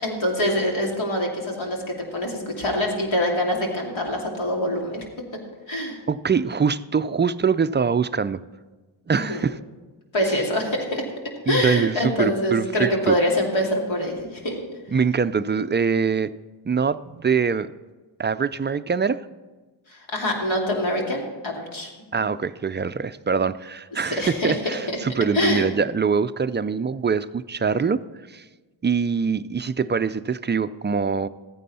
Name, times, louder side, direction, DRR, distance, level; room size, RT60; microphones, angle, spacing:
voice 1, 0.0-5.0 5.7-6.0 9.1-9.4 10.1-11.1 11.5-14.6 19.9-21.9 24.0-24.5 25.3-25.7, left 1 dB, 70° left, 0 dB, 2.7 m, -25 dB
voice 2, 6.1-8.4 9.1-9.6 11.5-13.2 14.9-16.3 16.7-17.7 18.2-19.2 22.1-28.0 28.3-28.4 28.8-31.3, right 5 dB, 25° right, 14 dB, 0.3 m, -23 dB
14.0 x 9.2 x 4.2 m, 1.2 s
cardioid pair, 50°, 49 cm